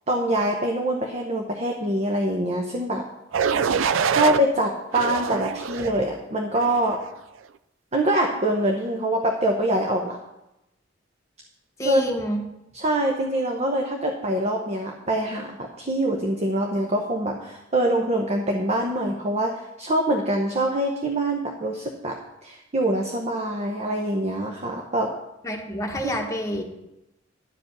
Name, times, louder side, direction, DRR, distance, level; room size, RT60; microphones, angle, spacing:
voice 1, 0.1-3.1 4.1-7.0 7.9-10.2 11.8-12.0 12.7-25.1, right 1 dB, 35° right, 1 dB, 0.9 m, -24 dB
sound 1, 3.3-4.4 4.9-6.0 6.6-6.9, right 6 dB, 75° right, 0.4 m, -24 dB
voice 2, 11.8-12.4 25.4-26.6, equal, 15° left, 1 dB, 1.2 m, -28 dB
11.0 x 5.0 x 6.7 m, 0.91 s
head